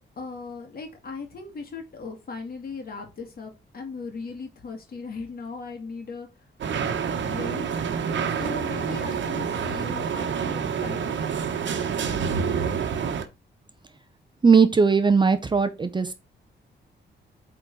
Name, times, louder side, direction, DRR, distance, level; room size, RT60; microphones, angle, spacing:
voice 1, 0.2-6.3 6.8-7.9 8.3-11.3, left 4 dB, 50° left, 2.1 m, -38 dB
sound 1, 6.6-13.3, right 6 dB, 75° right, 1.1 m, -27 dB
voice 2, 14.4-16.1, right 5 dB, 25° right, 0.6 m, -19 dB
8.5 x 3.8 x 4.6 m
wide cardioid pair, 170°, 19 cm